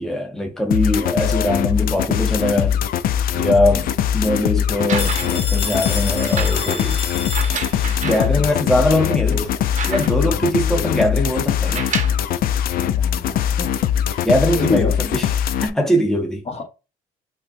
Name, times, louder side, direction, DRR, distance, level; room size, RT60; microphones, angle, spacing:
voice 1, 0.0-2.8 3.3-7.0 8.0-9.4 9.9-11.9 14.2-16.4, left 1 dB, 5° left, 0.8 m, -21 dB
sound 1, 0.7-15.7, left 9 dB, 60° left, 0.4 m, -21 dB
voice 2, 1.1-1.6 1.9-2.2 3.7-3.9 7.7-8.5 9.1-9.5 10.2-11.0 12.8-13.7 14.0-14.2 14.5-15.0 16.5-16.7, left 4 dB, 40° left, 1.1 m, -30 dB
sound 2, 4.7-5.5 6.2-8.3 8.9-9.0 9.3-10.4 11.6-12.3 13.2-13.3, right 6 dB, 45° right, 0.8 m, -30 dB
Telephone, 5.0-8.0, left 5 dB, 75° left, 1.1 m, -30 dB
5.5 x 2.2 x 2.6 m
supercardioid pair, 70°, 17 cm